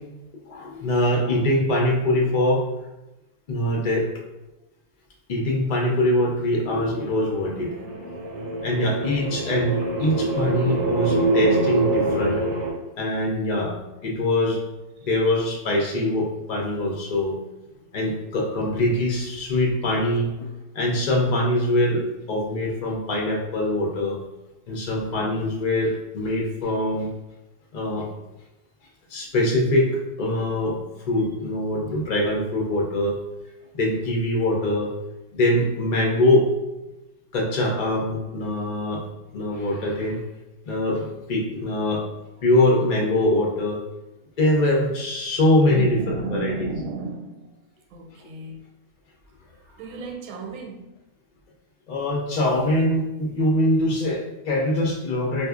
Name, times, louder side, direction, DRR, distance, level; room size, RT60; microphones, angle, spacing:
voice 1, 0.5-2.6 3.5-4.1 5.3-7.7 8.6-12.4 13.0-13.8 14.0-14.6 15.0-17.3 17.9-20.5 20.7-24.2 24.7-27.1 27.7-28.1 29.1-30.8 31.1-33.2 33.7-34.9 35.3-36.5 37.3-39.0 39.3-40.2 40.7-42.0 42.4-43.8 44.4-45.9 46.3-46.5 51.9-55.5, left 1 dB, 70° left, 0.4 m, -23 dB
voice 2, 7.4-8.5 13.2-13.3 15.0-15.1 17.7-17.9 31.2-31.3 44.2-44.3 45.6-47.6 47.9-48.6 49.3-49.4 49.7-50.9, right 3 dB, 90° right, 1.1 m, -35 dB
sound 1, 7.6-12.7, right 2 dB, 60° right, 0.9 m, -24 dB
4.1 x 2.6 x 2.4 m
omnidirectional pair, 1.5 m